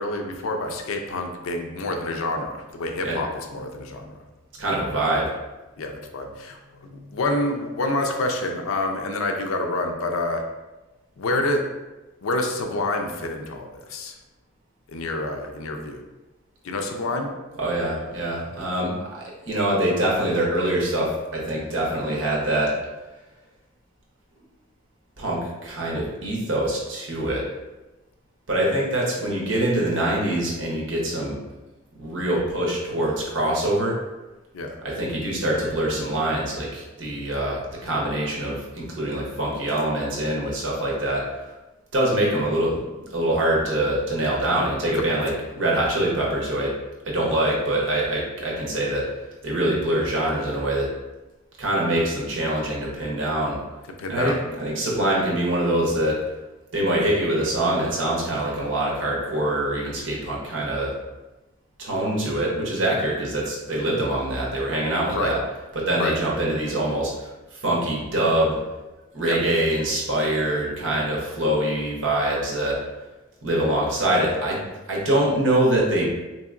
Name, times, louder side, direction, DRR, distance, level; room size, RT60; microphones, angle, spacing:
voice 1, 0.0-4.2 5.8-10.4 11.2-11.6 12.2-14.1 14.9-16.0 16.6-17.3 34.5-34.7 45.0-45.4 54.0-54.4 65.1-65.4 66.0-66.2 69.2-69.4, left 2 dB, 85° left, 4 dB, 0.5 m, -27 dB
voice 2, 4.6-5.3 17.6-22.7 25.2-27.4 28.5-31.4 32.0-34.0 34.8-41.2 41.9-42.8 43.1-46.7 47.0-49.1 49.4-50.9 51.6-53.6 54.1-56.2 56.7-60.9 61.8-65.4 65.7-68.6 69.1-72.8 73.4-74.6 74.9-76.1, right 1 dB, 65° right, -3 dB, 0.9 m, -24 dB
3.9 x 2.9 x 2.4 m, 1.1 s
head